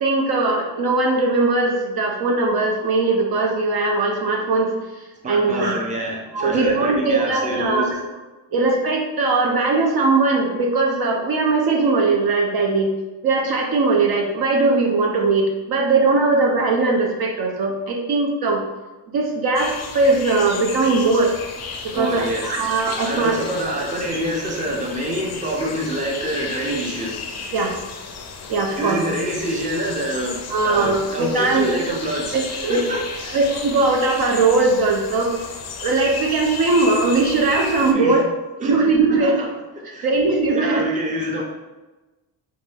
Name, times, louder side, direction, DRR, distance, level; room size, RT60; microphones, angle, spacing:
voice 1, 0.0-5.8 6.3-8.0 8.5-12.9 13.2-18.6 19.1-21.3 21.8-23.4 27.5-27.7 28.5-29.0 30.5-31.7 32.3-32.8 33.3-35.3 35.8-38.2 38.6-39.4 40.0-40.8, right 3 dB, 55° right, 1 dB, 0.7 m, -20 dB
voice 2, 5.2-7.9 21.9-22.6 23.0-27.2 28.8-33.4 37.9-38.2 38.6-38.8 39.1-39.5 39.9-40.1 40.5-41.4, right 1 dB, 15° right, -2 dB, 0.6 m, -26 dB
sound 1, 19.6-37.9, left 4 dB, 35° left, 0.5 m, -34 dB
3.5 x 2.6 x 3.3 m, 1.1 s
cardioid pair, 105°, 46 cm